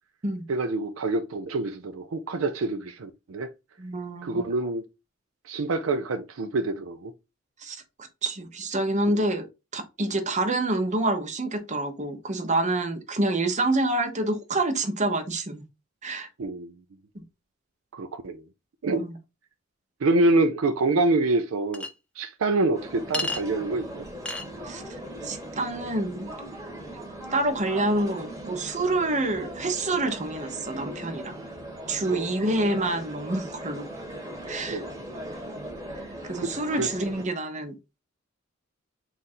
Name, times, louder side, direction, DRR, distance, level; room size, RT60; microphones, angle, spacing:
voice 1, 0.5-3.5 4.2-4.9 5.5-7.1 9.1-9.2 16.4-16.8 17.9-18.4 18.8-19.0 20.0-21.9 22.2-24.0 32.1-32.3 34.7-34.9 36.4-36.9, right 2 dB, 80° right, 0.5 m, -26 dB
voice 2, 3.8-4.4 7.6-7.8 8.2-9.4 9.7-15.6 16.0-16.3 17.1-17.2 18.9-19.1 24.7-24.8 25.2-26.3 27.3-31.4 31.9-33.9 34.5-34.8 36.2-37.7, right 2 dB, 35° right, 0.9 m, -27 dB
Chink clink, 21.7-21.9 23.1-23.4 24.2-24.5, left 2 dB, 5° left, 0.5 m, -30 dB
sound 1, 22.7-37.3, right 1 dB, 15° right, 1.1 m, -39 dB
3.9 x 2.5 x 4.1 m
head